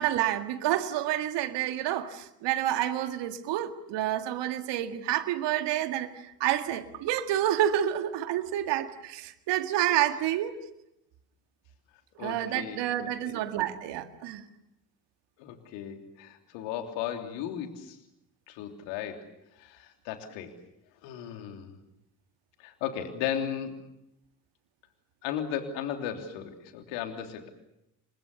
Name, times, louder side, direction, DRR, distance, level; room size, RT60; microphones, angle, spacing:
voice 1, 0.0-10.6 12.2-14.4, right 12 dB, 65° right, 2.0 m, -29 dB
voice 2, 12.2-13.4 15.4-18.0 18.5-19.3 19.6-20.5 21.0-21.8 22.6-23.8 25.2-27.5, left 9 dB, 70° left, 3.4 m, -36 dB
29.0 x 24.0 x 6.9 m
figure-of-eight pair, 45°, 45 cm